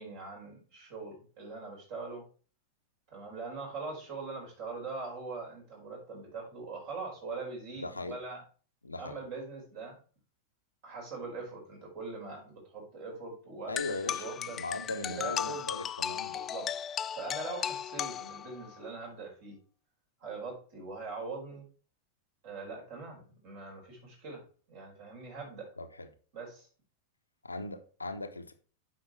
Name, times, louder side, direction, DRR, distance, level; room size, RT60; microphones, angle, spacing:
voice 1, 0.0-2.2 3.1-8.4 9.0-10.0 10.8-14.6 14.9-15.7 16.3-16.7 17.1-19.6 20.2-21.7 22.4-25.7 26.3-26.7, right 3 dB, 50° right, 4.9 m, -42 dB
voice 2, 7.7-8.2 8.8-9.2 13.7-14.2 14.5-16.4 25.8-26.1 27.4-28.5, left 2 dB, 80° left, 0.9 m, -38 dB
sound 1, 13.8-18.8, left 9 dB, 25° left, 0.3 m, -36 dB
8.5 x 5.6 x 4.5 m
figure-of-eight pair, 90°, 0 cm